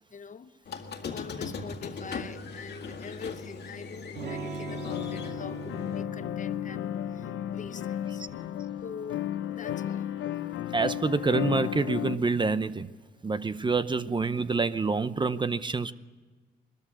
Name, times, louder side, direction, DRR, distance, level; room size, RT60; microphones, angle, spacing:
voice 1, 0.1-0.5 1.1-7.3 7.5-8.2 8.8-10.1, left 6 dB, 40° left, 0.8 m, -44 dB
Squeak, 0.7-6.0, left 4 dB, 55° left, 1.9 m, -39 dB
Electric guitar / Strum, 4.2-9.9, right 3 dB, 60° right, 2.0 m, -42 dB
sound 1, 4.7-12.2, left 12 dB, 75° left, 0.8 m, -34 dB
voice 2, 10.7-12.9 13.2-15.9, right 4 dB, 25° right, 0.7 m, -27 dB
20.5 x 13.5 x 9.8 m
cardioid pair, 90°, 20 cm